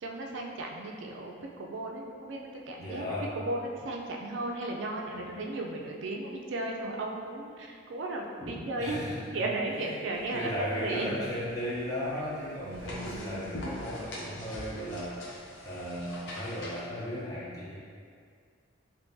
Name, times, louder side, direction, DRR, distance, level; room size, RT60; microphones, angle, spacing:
voice 1, 0.0-9.1 9.3-11.2 12.6-13.7, right 2 dB, 65° right, 0 dB, 0.4 m, -35 dB
voice 2, 2.8-3.3 5.1-5.5 8.4-9.9 10.3-15.2 15.6-17.8, equal, 15° left, -7 dB, 0.6 m, -36 dB
sound 1, 10.1-16.8, left 1 dB, 65° left, 0.6 m, -44 dB
3.7 x 2.6 x 2.6 m, 2.1 s
head